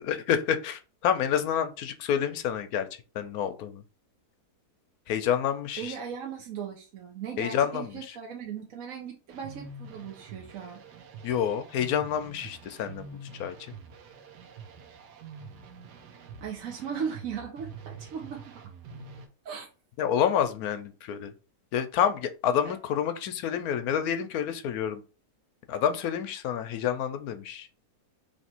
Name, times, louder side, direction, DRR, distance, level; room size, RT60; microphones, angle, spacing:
voice 1, 0.0-2.9 3.1-3.8 5.1-5.9 7.4-8.0 11.2-13.1 13.4-13.6 20.0-21.3 21.7-25.0 25.7-27.7, left 8 dB, 70° left, 9 dB, 1.0 m, -28 dB
voice 2, 5.8-10.8 16.4-18.4 19.4-19.7 22.6-22.7, right 7 dB, 60° right, 1 dB, 1.1 m, -37 dB
sound 1, 9.3-19.3, right 4 dB, 80° right, 1.2 m, -46 dB
3.3 x 3.0 x 4.3 m, 0.34 s
omnidirectional pair, 1.7 m